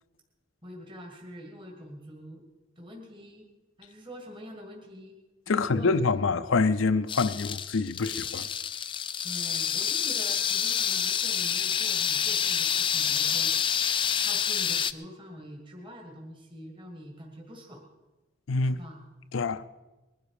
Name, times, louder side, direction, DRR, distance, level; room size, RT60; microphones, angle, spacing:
voice 1, 0.6-2.4 2.8-3.5 3.8-5.2 5.5-6.2 9.2-13.9 14.2-17.9 18.6-19.0, equal, 25° right, 2.2 m, -45 dB
voice 2, 5.5-8.5 18.5-18.8 19.3-19.6, left 4 dB, 90° left, 0.6 m, -26 dB
sound 1, 7.1-14.9, left 8 dB, 25° left, 0.4 m, -28 dB
21.0 x 12.0 x 4.9 m
head